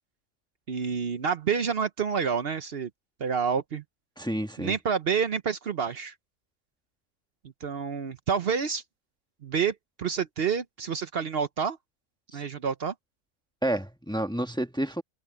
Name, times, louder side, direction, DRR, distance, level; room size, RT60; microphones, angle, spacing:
voice 1, 0.7-2.9 3.2-3.8 4.6-6.1 7.6-8.8 9.4-11.8 12.3-12.9, right 6 dB, 60° right, 1.0 m, -28 dB
voice 2, 4.2-4.7 12.3-12.4 13.6-15.0, right 1 dB, 5° left, 1.2 m, -30 dB
omnidirectional pair, 1.2 m